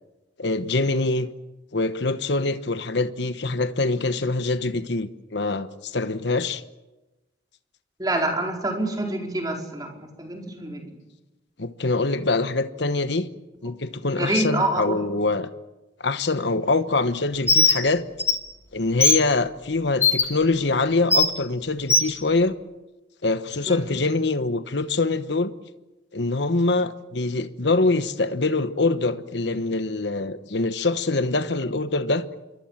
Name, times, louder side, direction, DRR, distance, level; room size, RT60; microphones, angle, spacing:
voice 1, 0.4-1.3 1.7-6.6 11.6-13.3 13.6-15.5 16.0-18.0 18.7-22.6 23.2-25.5 26.1-32.2, left 3 dB, 65° left, 1.1 m, -24 dB
voice 2, 8.0-10.8 14.2-14.9 23.7-23.9, right 2 dB, 20° right, 4.4 m, -26 dB
Bird, 17.5-17.8 18.2-18.3 19.0-19.2 20.0-20.2 21.1-21.3 21.9-22.1, left 3 dB, 15° left, 2.1 m, -17 dB
27.5 x 23.0 x 7.4 m
head